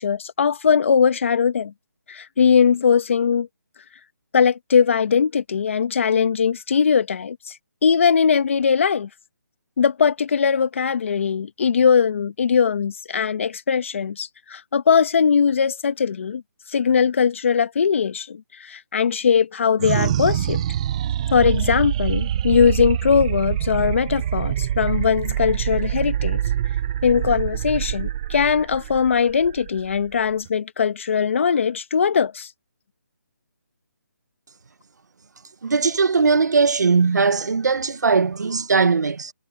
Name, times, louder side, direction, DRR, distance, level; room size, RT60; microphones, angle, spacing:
voice 1, 0.0-1.7 2.1-3.5 4.3-7.6 7.8-9.1 9.8-16.4 16.7-20.6 21.3-26.4 27.0-32.5, left 6 dB, 45° left, 1.5 m, -20 dB
sound 1, 19.8-30.5, right 11 dB, 20° right, 0.7 m, -25 dB
voice 2, 35.6-39.3, right 4 dB, 70° right, 1.5 m, -19 dB
hypercardioid pair, 170°, 10 cm